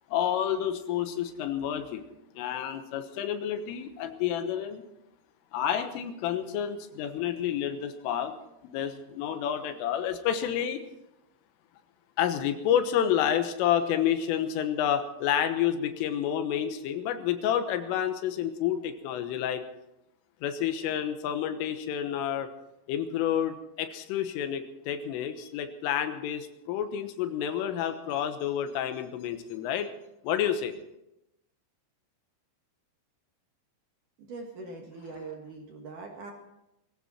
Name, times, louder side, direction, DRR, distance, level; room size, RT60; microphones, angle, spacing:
voice 1, 0.1-2.1 2.4-4.8 5.5-8.3 8.6-10.8 12.2-19.6 20.4-22.5 22.9-29.9 30.2-30.7, left 9 dB, 85° left, 8 dB, 3.7 m, -29 dB
voice 2, 34.2-36.3, right 3 dB, 55° right, 1 dB, 2.7 m, -42 dB
20.5 x 16.0 x 4.3 m, 0.88 s
omnidirectional pair, 5.7 m